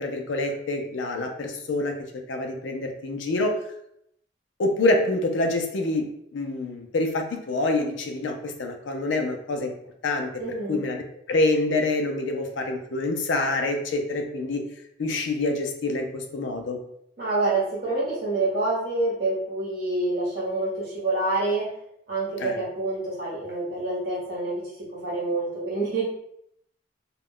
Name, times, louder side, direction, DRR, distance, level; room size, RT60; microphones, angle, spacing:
voice 1, 0.0-1.9 2.3-3.6 4.6-9.7 10.0-10.3 10.7-11.0 11.3-14.6 15.0-16.8 22.4-22.6, left 2 dB, 75° left, 4 dB, 0.4 m, -26 dB
voice 2, 10.4-10.8 17.2-21.7 22.1-26.0, right 2 dB, 50° right, -6 dB, 0.9 m, -27 dB
2.3 x 2.1 x 3.5 m, 0.74 s
head